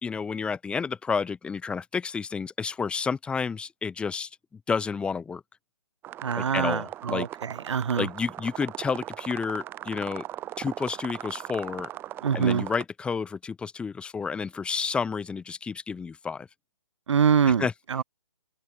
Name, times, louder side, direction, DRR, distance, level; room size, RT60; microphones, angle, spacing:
voice 1, 0.0-4.3 4.7-5.4 6.4-7.3 8.0-10.2 10.6-11.9 12.3-16.5 17.5-17.7, left 5 dB, 5° left, 2.2 m, -30 dB
sound 1, 6.0-12.8, right 13 dB, 10° right, 1.8 m, -39 dB
voice 2, 6.2-8.1 12.2-12.6 17.1-18.0, right 7 dB, 60° right, 1.3 m, -25 dB
open air
hypercardioid pair, 160°, 17 cm